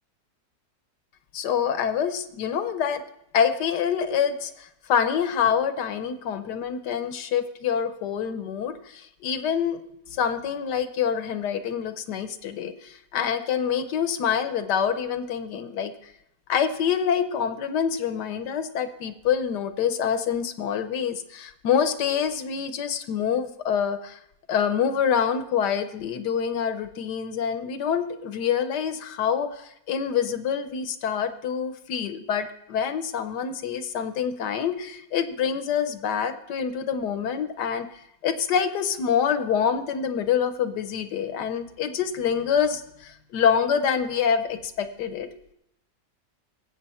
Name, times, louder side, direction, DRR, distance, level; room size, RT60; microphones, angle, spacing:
voice 1, 1.3-3.0 3.3-9.8 10.1-15.9 16.5-24.2 24.5-37.9 38.2-45.3, left 7 dB, 75° left, 10 dB, 1.3 m, -26 dB
17.5 x 8.1 x 4.2 m, 0.79 s
omnidirectional pair, 1.9 m